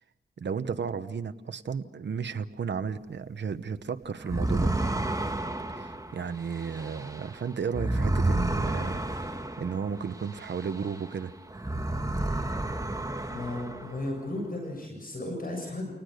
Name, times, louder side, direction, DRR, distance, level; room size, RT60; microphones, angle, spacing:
voice 1, 0.4-4.7 5.7-11.3, right 6 dB, 85° right, 10 dB, 1.0 m, -33 dB
sound 1, 4.2-11.2 11.5-14.2, right 2 dB, 20° right, 1.9 m, -31 dB
voice 2, 13.3-15.9, left 1 dB, 55° left, 2 dB, 7.5 m, -35 dB
29.0 x 19.5 x 6.6 m, 0.96 s
cardioid pair, 55°, 18 cm